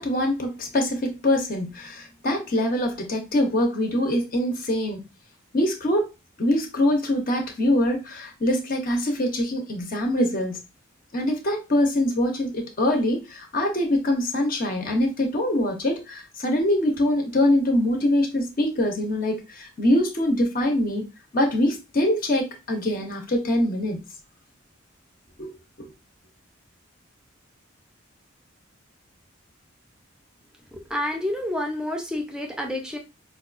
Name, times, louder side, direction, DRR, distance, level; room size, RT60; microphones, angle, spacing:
voice 1, 0.0-5.0 5.5-6.1 6.4-10.6 11.1-21.0 21.3-24.0 25.4-25.5 25.8-25.9, left 1 dB, 45° left, 0.6 m, -24 dB
voice 2, 30.7-33.0, left 1 dB, 5° right, 0.5 m, -29 dB
4.5 x 2.3 x 2.4 m
head